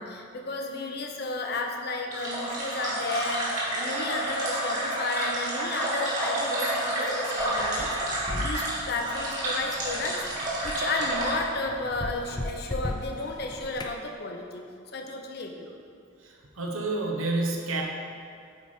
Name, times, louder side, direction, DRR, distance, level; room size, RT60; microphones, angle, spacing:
voice 1, 0.0-14.6 14.9-15.7, left 2 dB, 50° left, 2 dB, 0.7 m, -33 dB
sound 1, 2.1-11.4, right 1 dB, 35° right, 1.8 m, -29 dB
sound 2, 7.4-14.0, left 2 dB, 20° left, 0.4 m, -38 dB
voice 2, 16.2-17.8, right 2 dB, 80° right, 0 dB, 1.0 m, -29 dB
8.1 x 4.8 x 4.3 m, 2.4 s
head